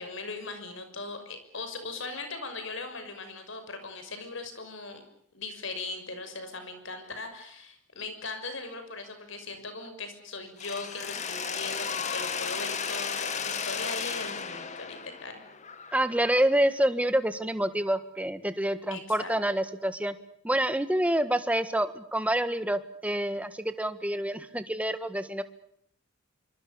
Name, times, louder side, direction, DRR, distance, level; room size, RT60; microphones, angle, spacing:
voice 1, 0.0-5.0 5.3-15.4 18.9-19.3, left 3 dB, 60° left, 8 dB, 6.4 m, -39 dB
Mechanisms, 10.6-16.5, left 6 dB, 35° left, 2.0 m, -34 dB
voice 2, 15.9-20.2 20.4-25.4, right 1 dB, 5° right, 11 dB, 1.5 m, -27 dB
26.5 x 25.0 x 6.9 m, 0.66 s
head